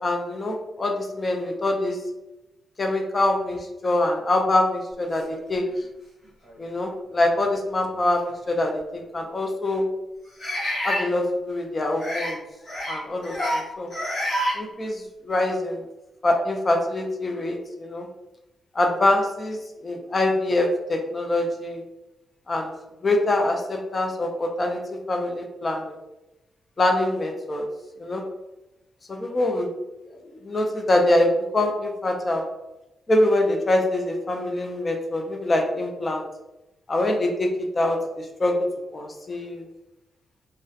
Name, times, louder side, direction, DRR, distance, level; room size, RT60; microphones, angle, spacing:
voice 1, 0.0-2.0 2.8-5.6 6.6-9.9 10.8-12.4 12.9-13.9 14.5-15.8 16.2-18.1 18.7-21.8 22.5-22.7 23.0-26.0 26.8-27.7 28.0-28.2 29.1-29.7 30.3-32.4 33.1-36.2 36.9-38.6 38.9-39.7, left 1 dB, 25° left, 2 dB, 0.3 m, -24 dB
sound 1, 5.6-5.7 6.4-6.6 8.2-8.3 10.4-11.0 12.0-12.3 12.6-13.0 13.2-13.6 13.9-14.5, equal, 50° left, 1.0 m, -27 dB
2.3 x 2.1 x 2.5 m, 0.97 s
wide cardioid pair, 165°, 0 cm